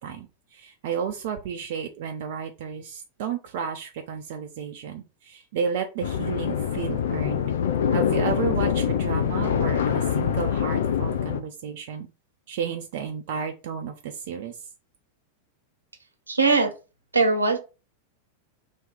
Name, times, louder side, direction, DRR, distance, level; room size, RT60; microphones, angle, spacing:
voice 1, 0.0-7.4 7.9-12.1 12.5-14.6, right 7 dB, 50° right, 5 dB, 0.5 m, -32 dB
sound 1, 6.0-11.4, left 8 dB, 60° left, 0.5 m, -24 dB
voice 2, 16.3-16.7 17.1-17.6, right 3 dB, 80° right, 5 dB, 0.7 m, -20 dB
2.8 x 2.7 x 3.6 m, 0.30 s
figure-of-eight pair, 90°, 0 cm